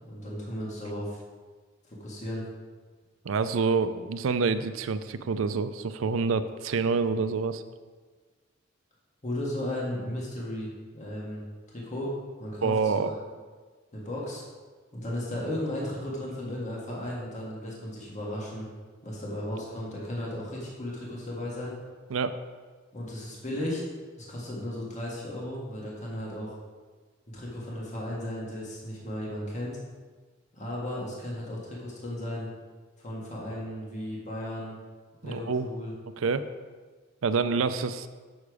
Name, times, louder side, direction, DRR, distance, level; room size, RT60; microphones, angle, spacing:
voice 1, 0.1-1.2 1.8-2.4 9.2-11.4 11.7-12.1 12.4-13.1 13.9-14.4 14.9-18.7 19.0-21.8 22.9-23.9 24.2-26.6 27.3-29.8 30.5-32.5 33.0-34.8 35.2-35.9, left 1 dB, 35° left, -4 dB, 1.8 m, -35 dB
voice 2, 3.2-7.6 12.6-13.1 22.1-22.4 35.2-35.7 36.2-36.4 37.2-38.1, right 4 dB, 85° right, 11 dB, 0.5 m, -27 dB
7.1 x 6.6 x 4.8 m, 1.4 s
head